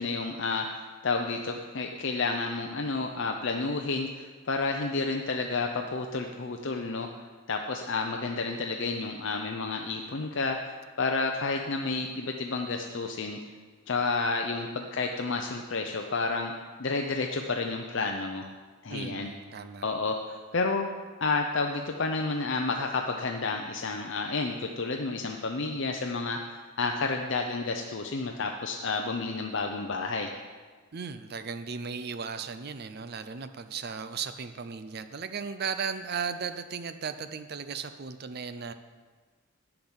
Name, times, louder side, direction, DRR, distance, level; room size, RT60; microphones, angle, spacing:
voice 1, 0.0-7.1 7.5-13.4 13.9-16.5 16.8-18.5 18.8-19.3 19.8-20.9 21.2-30.3, left 3 dB, 60° left, 3 dB, 0.6 m, -30 dB
voice 2, 18.9-19.9 30.9-38.7, right 6 dB, 45° right, 10 dB, 0.5 m, -36 dB
10.5 x 5.9 x 8.0 m, 1.5 s
head